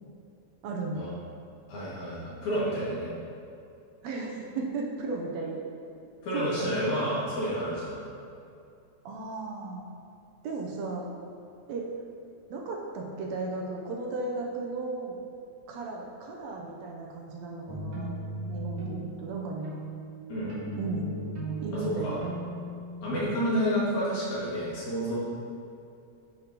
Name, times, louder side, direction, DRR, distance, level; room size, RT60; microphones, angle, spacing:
voice 1, 0.6-1.0 4.0-5.6 6.3-6.8 9.1-9.9 10.4-11.1 11.7-11.9 12.5-15.2 15.7-18.2 18.5-19.7 20.8-21.1 21.6-22.3, right 3 dB, 75° right, -1 dB, 1.8 m, -35 dB
voice 2, 1.7-3.1 6.2-8.0 20.3-20.6 21.7-22.2 23.0-25.2, equal, 75° left, -8 dB, 3.4 m, -30 dB
sound 1, 17.7-23.2, right 2 dB, 50° right, 2.1 m, -38 dB
10.0 x 5.4 x 2.9 m, 2.5 s
omnidirectional pair, 3.4 m